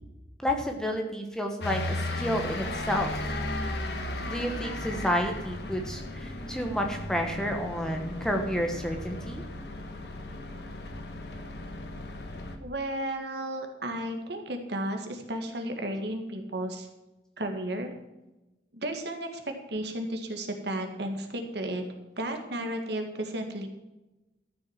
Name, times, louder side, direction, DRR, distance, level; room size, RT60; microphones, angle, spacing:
voice 1, 0.4-3.1 4.3-9.4, equal, 5° left, 3 dB, 1.2 m, -30 dB
sound 1, 1.6-12.6, left 1 dB, 60° left, 1.6 m, -35 dB
voice 2, 12.6-16.9 17.4-17.9 18.7-21.8 22.2-23.7, right 1 dB, 65° right, 4 dB, 1.9 m, -33 dB
13.5 x 6.3 x 7.4 m, 1.0 s
head